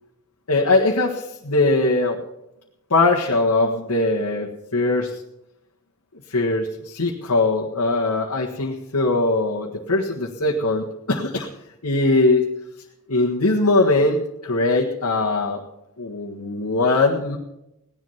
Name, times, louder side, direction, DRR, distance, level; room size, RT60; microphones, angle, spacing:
voice 1, 0.5-2.2 2.9-5.2 6.3-11.5 11.8-12.5 13.1-15.6 16.0-17.4, left 2 dB, 80° left, -2 dB, 1.7 m, -21 dB
18.0 x 11.0 x 5.7 m, 0.85 s
head